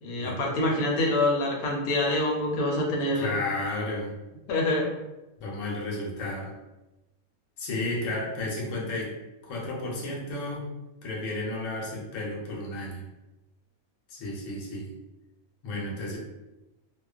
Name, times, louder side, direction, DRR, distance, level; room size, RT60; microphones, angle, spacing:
voice 1, 0.0-3.4 4.5-4.9, left 1 dB, 90° left, -1 dB, 1.1 m, -26 dB
voice 2, 3.1-4.1 5.4-6.6 7.6-9.1 9.4-10.7 11.0-13.1 14.1-14.9 15.6-16.2, left 2 dB, 65° left, -3 dB, 1.0 m, -32 dB
2.4 x 2.3 x 2.3 m, 0.99 s
omnidirectional pair, 1.5 m